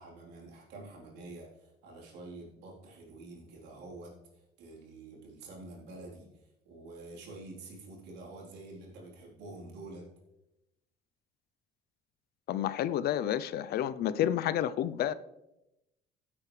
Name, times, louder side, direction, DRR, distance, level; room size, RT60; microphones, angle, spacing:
voice 1, 0.0-10.1, right 2 dB, 85° right, 3.9 m, -48 dB
voice 2, 12.5-15.1, left 11 dB, 65° left, 0.6 m, -30 dB
16.0 x 8.4 x 3.3 m
cardioid pair, 110°, 17 cm